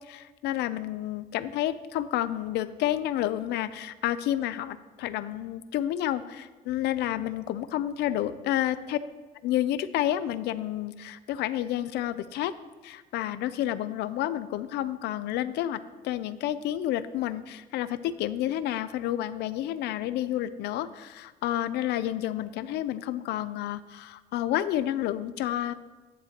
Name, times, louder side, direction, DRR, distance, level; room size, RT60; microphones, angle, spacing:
voice 1, 0.1-9.0 9.4-12.5 12.8-25.7, left 12 dB, 80° left, 14 dB, 0.6 m, -30 dB
11.5 x 10.0 x 3.0 m, 1.3 s
cardioid pair, 110°, 17 cm